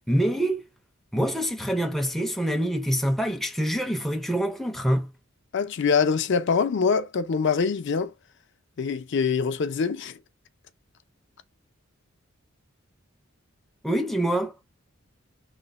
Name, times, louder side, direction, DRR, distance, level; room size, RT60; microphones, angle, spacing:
voice 1, 0.1-0.6 1.1-5.1 13.8-14.5, right 1 dB, ahead, 0.4 m, -25 dB
voice 2, 5.5-8.1 8.8-10.2, left 5 dB, 60° left, 0.4 m, -24 dB
3.1 x 2.0 x 4.0 m
head